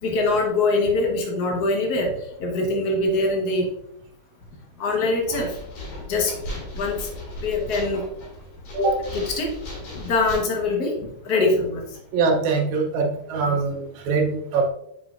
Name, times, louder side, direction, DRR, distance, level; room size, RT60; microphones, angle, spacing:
voice 1, 0.0-3.7 4.8-5.5 6.1-6.3 6.7-7.1 7.4-8.0 8.8-9.5 9.9-11.8 13.5-13.6, left 2 dB, 60° left, 1 dB, 1.0 m, -23 dB
sound 1, 5.2-10.4, left 1 dB, 80° left, 3.4 m, -36 dB
voice 2, 12.1-14.7, right 4 dB, 75° right, 2 dB, 2.1 m, -23 dB
6.9 x 5.6 x 2.4 m, 0.77 s
omnidirectional pair, 3.4 m